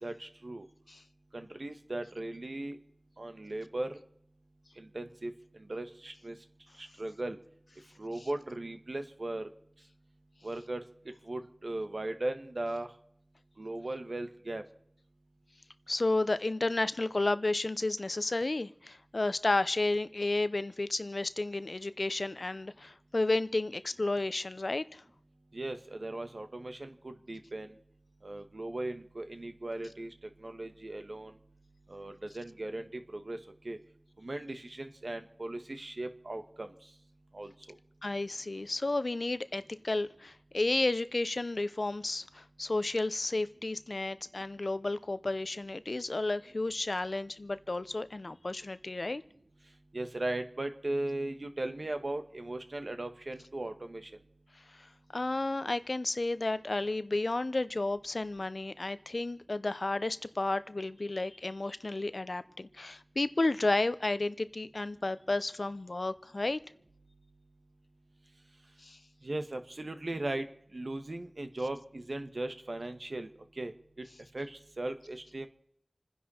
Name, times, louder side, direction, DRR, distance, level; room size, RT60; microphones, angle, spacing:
voice 1, 0.0-0.7 1.3-2.8 3.2-4.0 4.8-6.4 6.8-7.4 8.0-9.5 10.4-10.8 11.2-12.9 13.6-14.6 25.5-27.7 28.2-30.1 30.4-31.3 31.9-33.4 33.6-33.8 34.2-36.7 37.3-37.5 49.9-54.1 69.2-70.5 70.7-73.3 73.6-73.7 74.3-75.5, right 2 dB, 70° right, 1.4 m, -37 dB
voice 2, 15.9-25.0 38.0-49.2 54.8-54.9 55.1-66.6 68.8-69.0, left 2 dB, 70° left, 0.6 m, -32 dB
28.0 x 10.5 x 4.4 m
wide cardioid pair, 40°, 0 cm